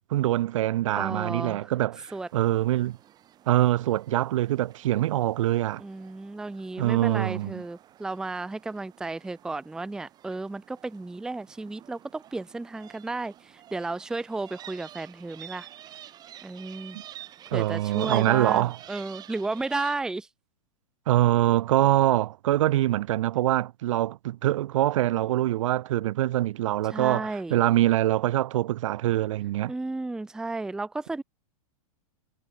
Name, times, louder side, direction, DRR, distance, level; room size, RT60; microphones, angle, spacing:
voice 1, 0.1-3.0 3.5-5.8 6.8-7.6 17.5-18.8 21.1-29.7, right 14 dB, 60° right, 1.2 m, -24 dB
voice 2, 0.9-1.7 2.1-2.3 5.8-15.7 16.4-17.0 17.5-20.3 26.9-27.6 29.7-31.2, right 3 dB, 5° right, 0.7 m, -33 dB
sound 1, 2.1-20.0, right 11 dB, 20° right, 2.6 m, -49 dB
hypercardioid pair, 150°, 18 cm